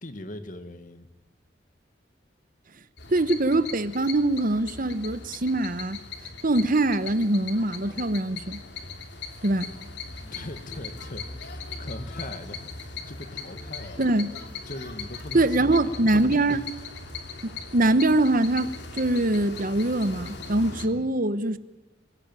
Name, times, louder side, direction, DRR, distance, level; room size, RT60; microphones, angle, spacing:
voice 1, 0.0-1.1 10.1-14.1 14.7-16.1 16.5-16.6 17.4-17.5 20.8-21.1, left 1 dB, 45° left, 1.9 m, -40 dB
sound 1, 3.0-20.9, left 4 dB, 65° left, 2.7 m, -39 dB
voice 2, 3.1-6.0 6.4-8.6 9.4-9.7 14.0-14.4 15.3-16.6 17.4-21.6, right 2 dB, 50° right, 1.1 m, -23 dB
sound 2, 10.1-20.7, left 1 dB, 30° left, 7.9 m, -49 dB
25.5 x 16.5 x 9.1 m
head